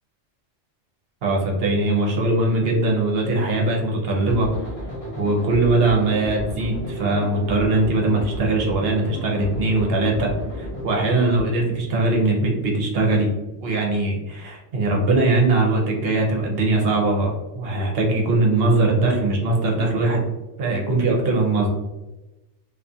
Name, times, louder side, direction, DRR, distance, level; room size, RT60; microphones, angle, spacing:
voice 1, 1.2-4.5 5.2-10.3 10.6-13.3 13.6-20.2 20.6-21.7, right 2 dB, 60° right, -1 dB, 0.8 m, -21 dB
sound 1, 4.3-11.4, left 1 dB, 35° left, 0.6 m, -33 dB
2.4 x 2.4 x 2.5 m, 1.0 s
omnidirectional pair, 1.3 m